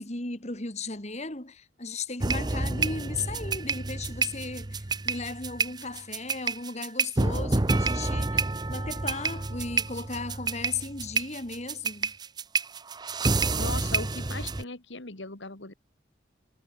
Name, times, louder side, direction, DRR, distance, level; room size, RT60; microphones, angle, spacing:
voice 1, 0.0-8.4 8.7-12.1, left 3 dB, 35° left, 2.4 m, -36 dB
sound 1, 2.2-14.6, right 3 dB, 20° right, 0.7 m, -29 dB
voice 2, 13.5-15.7, left 3 dB, 70° left, 2.5 m, -38 dB
head